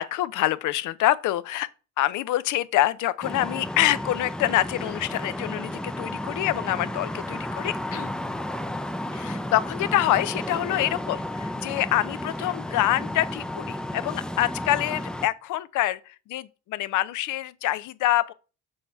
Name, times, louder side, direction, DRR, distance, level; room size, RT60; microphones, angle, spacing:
voice 1, 0.0-1.7 2.0-8.1 9.1-18.3, left 14 dB, 80° left, 0.5 m, -26 dB
sound 1, 3.2-15.3, left 1 dB, 5° left, 0.3 m, -33 dB
6.5 x 2.8 x 5.4 m
cardioid pair, 90°, 30 cm